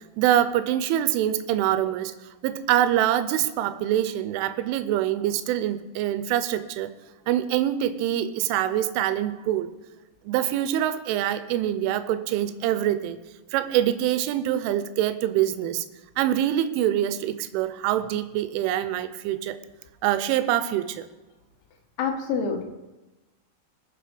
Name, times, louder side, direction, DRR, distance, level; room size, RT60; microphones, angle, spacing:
voice 1, 0.2-2.1 2.4-6.9 7.3-9.7 10.3-13.2 13.5-15.9 16.2-19.6 20.0-21.1, right 12 dB, 85° right, 11 dB, 3.2 m, -25 dB
voice 2, 22.0-22.6, left 5 dB, 75° left, 4 dB, 3.6 m, -26 dB
21.0 x 7.2 x 5.2 m, 1.1 s
omnidirectional pair, 5.5 m